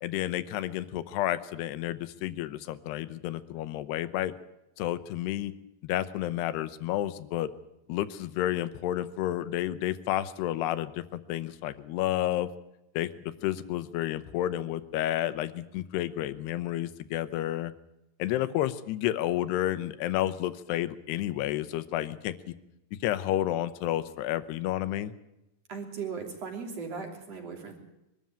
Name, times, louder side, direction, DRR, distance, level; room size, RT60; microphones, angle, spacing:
voice 1, 0.0-4.3 4.8-5.5 5.8-7.5 7.9-12.5 13.0-13.1 13.4-17.7 18.2-22.5 23.0-25.1, left 13 dB, 90° left, 14 dB, 3.0 m, -30 dB
voice 2, 25.7-27.8, right 5 dB, 40° right, 3 dB, 3.9 m, -37 dB
23.0 x 13.0 x 8.9 m, 0.90 s
omnidirectional pair, 4.7 m